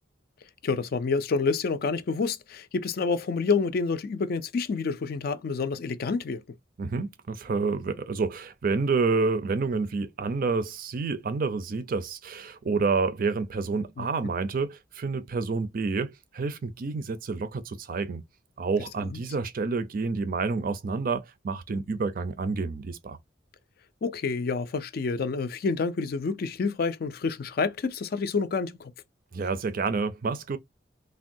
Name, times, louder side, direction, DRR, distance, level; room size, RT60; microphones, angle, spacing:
voice 1, 0.6-6.4 14.0-14.1 24.0-28.9, left 4 dB, 50° left, 0.4 m, -28 dB
voice 2, 6.8-18.2 18.6-23.2 29.3-30.6, right 4 dB, 45° right, 0.4 m, -29 dB
3.4 x 2.2 x 2.6 m
head